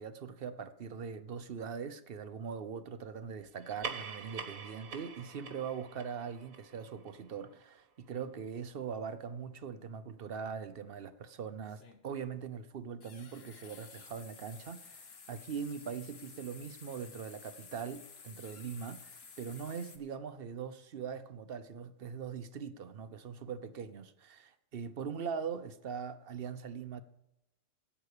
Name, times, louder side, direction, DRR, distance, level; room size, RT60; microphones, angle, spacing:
voice 1, 0.0-27.0, right 6 dB, 50° right, 0.8 m, -41 dB
sound 1, 3.6-8.4, right 6 dB, 90° right, 1.7 m, -46 dB
sound 2, 11.7-12.1 13.0-20.0, left 5 dB, 50° left, 1.3 m, -53 dB
16.0 x 5.8 x 6.6 m
omnidirectional pair, 1.4 m